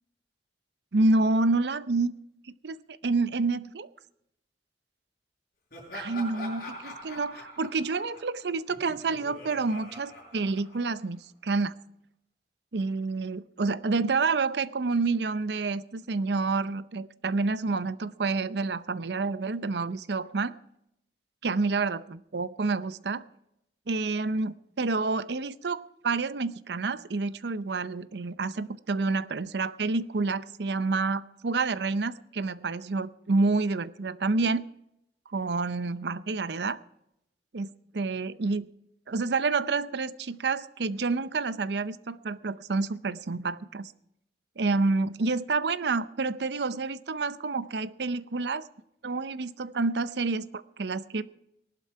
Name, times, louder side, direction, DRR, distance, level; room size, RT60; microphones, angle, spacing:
voice 1, 0.9-2.1 2.6-2.8 3.0-3.9 5.9-11.7 12.7-20.5 21.4-23.2 23.9-34.6 35.3-36.8 37.5-37.7 37.9-38.7 39.1-43.9 44.6-48.7 49.0-51.2, right 3 dB, 70° right, 15 dB, 0.6 m, -28 dB
Laughter, 5.7-11.1, left 1 dB, 55° left, 6.2 m, -44 dB
18.5 x 12.0 x 4.7 m, 0.81 s
head